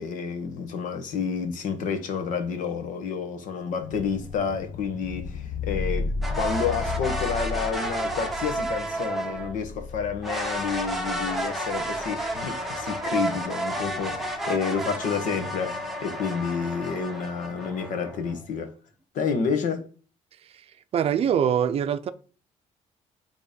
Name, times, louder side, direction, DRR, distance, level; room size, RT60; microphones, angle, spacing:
voice 1, 0.0-6.1 6.3-18.7 19.1-19.9, left 6 dB, 75° left, 1.5 m, -29 dB
sound 1, 2.7-3.0 3.8-18.4, left 4 dB, 60° left, 1.3 m, -36 dB
sound 2, 6.2-9.5 10.2-18.4, right 1 dB, ahead, 1.2 m, -31 dB
voice 2, 20.9-22.1, right 8 dB, 50° right, 0.5 m, -24 dB
9.0 x 3.6 x 5.3 m
cardioid pair, 150°, 13 cm